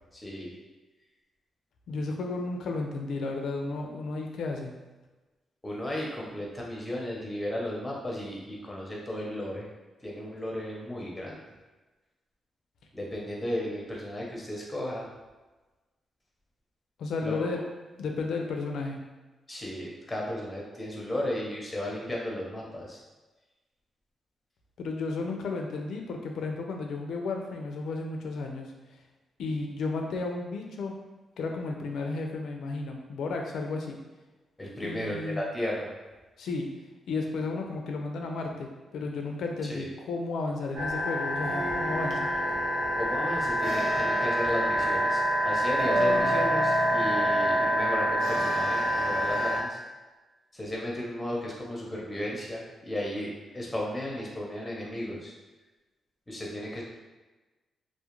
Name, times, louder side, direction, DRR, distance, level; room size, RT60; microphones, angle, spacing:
voice 1, 0.1-0.5 5.6-9.7 10.0-11.4 12.9-15.1 17.2-17.6 19.5-23.0 34.6-35.9 39.7-39.9 42.9-49.8 50.5-55.3 56.3-56.8, left 1 dB, 15° left, -3 dB, 0.7 m, -34 dB
voice 2, 1.9-4.7 17.0-17.6 18.0-19.0 24.8-28.7 29.4-31.0 31.4-34.0 34.8-35.4 36.4-36.7 37.1-42.3, left 3 dB, 80° left, 2 dB, 0.4 m, -33 dB
sound 1, 40.8-49.6, equal, 70° right, 0.6 m, -26 dB
2.3 x 2.1 x 3.0 m, 1.2 s
cardioid pair, 100°, 0 cm